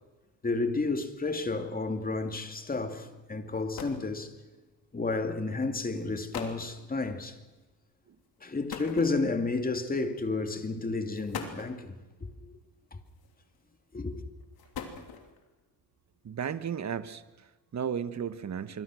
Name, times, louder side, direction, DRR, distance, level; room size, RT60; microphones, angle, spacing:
voice 1, 0.4-4.3 4.9-7.4 8.4-12.5 12.9-13.0 13.9-14.2, left 3 dB, 20° left, 2.5 m, -31 dB
sound 1, 3.5-4.1 5.1-5.3 6.0-6.1 6.3-6.7 8.7-9.5 10.5-10.6 11.1-11.8 13.1-13.6 14.4-15.4, left 6 dB, 70° left, 3.3 m, -41 dB
voice 2, 16.2-18.8, right 7 dB, 45° right, 1.4 m, -35 dB
25.5 x 24.5 x 6.3 m
cardioid pair, 100°, 38 cm